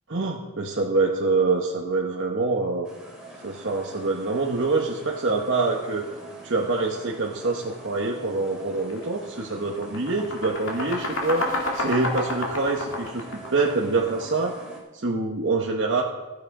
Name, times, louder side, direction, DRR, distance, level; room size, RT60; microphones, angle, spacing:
voice 1, 0.1-2.9 3.4-6.1 6.4-13.2 13.5-14.5 14.9-16.0, right 3 dB, 60° right, 0 dB, 1.0 m, -25 dB
sound 1, 2.8-14.8, right 2 dB, 5° right, 2.5 m, -44 dB
sound 2, 8.8-9.0 9.4-14.3, left 1 dB, 70° left, 2.3 m, -30 dB
12.5 x 8.4 x 4.8 m, 1.1 s
head